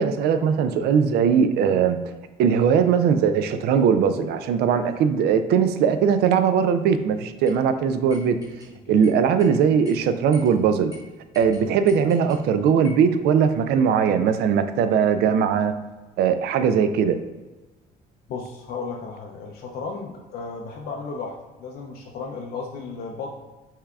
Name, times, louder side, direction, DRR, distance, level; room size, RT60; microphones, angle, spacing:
voice 1, 0.0-2.0 2.4-8.4 8.9-10.9 11.4-15.7 16.2-17.2, right 7 dB, 75° right, 10 dB, 0.4 m, -20 dB
sound 1, 7.5-7.6 8.1-8.7 9.0-9.5 9.8-10.0 10.3-10.5 10.9-11.0 11.3-12.4 12.8-13.1, left 1 dB, 20° right, 0.9 m, -46 dB
voice 2, 18.3-23.3, left 4 dB, 65° left, 0 dB, 0.5 m, -34 dB
5.6 x 3.4 x 2.3 m, 1.2 s
cardioid pair, 110°, 17 cm